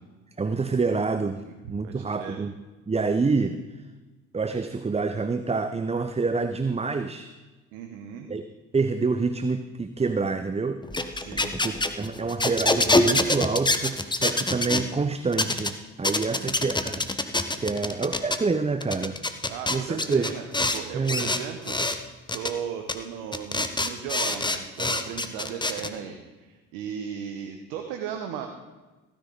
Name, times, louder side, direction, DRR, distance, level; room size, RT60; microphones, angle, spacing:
voice 1, 0.4-2.5 2.9-3.6 4.3-7.3 8.3-8.4 8.7-10.8 11.1-11.3 11.6-17.1 17.6-19.2 19.7-20.3 20.9-21.3, right 4 dB, 15° right, 10 dB, 0.7 m, -27 dB
voice 2, 1.8-2.4 7.7-8.3 11.1-11.7 16.1-16.5 19.5-20.5 20.7-21.8 22.3-28.5, right 8 dB, 80° right, 4 dB, 1.1 m, -36 dB
sound 1, 10.8-14.8 15.3-15.7 16.0-18.4 18.8-20.8 21.1-22.0 22.3-22.5 22.9-23.0 23.3-25.9, left 2 dB, 10° left, 1.1 m, -25 dB
15.5 x 10.0 x 3.9 m, 1.2 s
hypercardioid pair, 55°, 39 cm